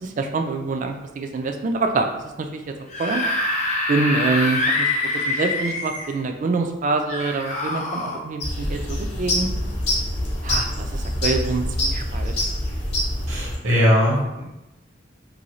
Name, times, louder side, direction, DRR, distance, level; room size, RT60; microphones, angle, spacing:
voice 1, 0.0-2.6 3.0-3.2 3.9-4.9 5.3-9.5 10.4-12.3, right 3 dB, 40° right, 4 dB, 0.3 m, -25 dB
Screaming / Screech, 2.7-6.1 7.1-8.2, left 2 dB, 40° left, 0.4 m, -25 dB
sound 1, 8.4-13.6, left 1 dB, 60° left, 0.8 m, -25 dB
voice 2, 13.3-14.4, equal, 70° right, -4 dB, 1.0 m, -20 dB
2.7 x 2.6 x 3.0 m, 0.97 s
head